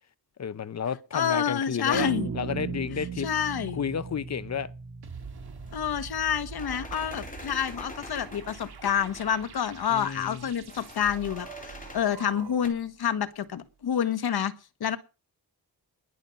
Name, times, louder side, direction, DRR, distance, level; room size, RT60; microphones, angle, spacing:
voice 1, 0.4-3.3 3.7-4.7 9.9-10.5, left 7 dB, 45° left, 0.7 m, -32 dB
voice 2, 1.1-2.3 3.2-3.8 5.7-14.5 14.8-15.0, left 8 dB, 75° left, 1.5 m, -28 dB
sound 1, 1.9-6.4, right 6 dB, 45° right, 2.0 m, -37 dB
sound 2, 5.0-12.8, right 6 dB, 75° right, 2.3 m, -45 dB
sound 3, 5.1-12.7, left 2 dB, 20° left, 3.3 m, -47 dB
20.5 x 7.1 x 5.3 m
wide cardioid pair, 140°, 38 cm